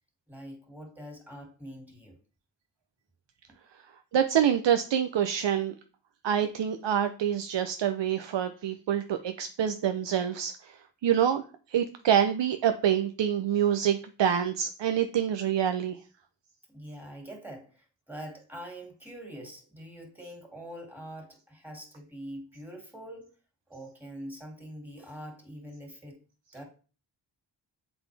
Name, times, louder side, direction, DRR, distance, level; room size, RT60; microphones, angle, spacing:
voice 1, 0.3-2.2 16.7-23.3 23.7-26.2 26.5-26.6, equal, 5° right, 2.4 m, -44 dB
voice 2, 4.1-5.7 6.2-10.8 11.0-11.4 11.7-16.0, right 9 dB, 70° right, 0.6 m, -26 dB
7.8 x 4.0 x 3.3 m
cardioid pair, 60°, 45 cm